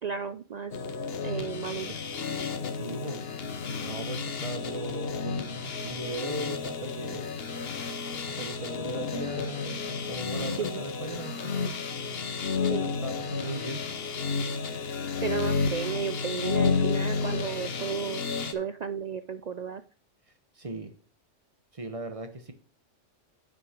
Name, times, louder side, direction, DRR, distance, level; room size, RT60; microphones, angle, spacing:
voice 1, 0.0-0.8 1.2-2.4 10.4-10.9 12.6-12.9 15.2-19.8, right 7 dB, 70° right, 11 dB, 0.4 m, -34 dB
sound 1, 0.7-18.5, left 5 dB, 55° left, 1.2 m, -31 dB
voice 2, 2.7-3.2 3.8-7.4 8.2-9.8 10.1-11.8 12.6-14.2 20.5-20.9 21.7-22.5, right 2 dB, 30° right, 8 dB, 1.1 m, -38 dB
7.6 x 6.1 x 5.2 m, 0.40 s
omnidirectional pair, 1.2 m